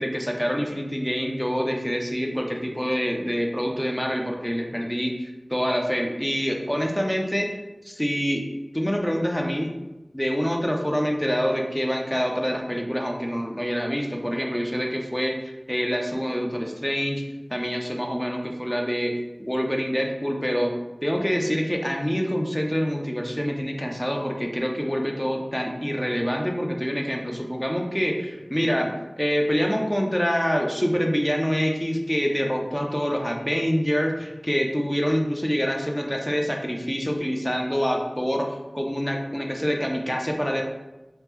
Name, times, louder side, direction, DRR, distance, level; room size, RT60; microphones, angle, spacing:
voice 1, 0.0-7.5 7.8-8.4 8.7-9.7 10.1-17.2 17.5-20.7 21.0-38.5 38.7-40.6, equal, 10° left, 1 dB, 0.4 m, -26 dB
3.5 x 2.0 x 2.9 m, 1.0 s
wide cardioid pair, 50°, 0 cm